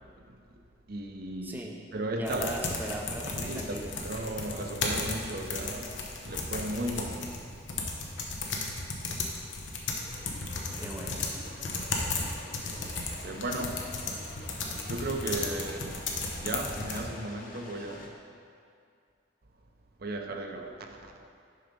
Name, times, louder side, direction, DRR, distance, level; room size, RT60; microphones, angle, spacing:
voice 1, 0.9-1.7 1.9-2.5 3.4-7.3 13.2-13.8 14.9-16.0 16.4-18.2 20.0-21.1, right 2 dB, 55° right, 3 dB, 0.6 m, -35 dB
voice 2, 1.4-1.8 2.2-3.9 10.8-11.2, right 1 dB, 10° right, 0 dB, 0.5 m, -38 dB
sound 1, 2.3-17.0, left 3 dB, 85° left, 0.9 m, -35 dB
sound 2, 10.0-18.1, left 1 dB, 50° left, 0.8 m, -49 dB
6.8 x 5.0 x 5.2 m, 2.3 s
head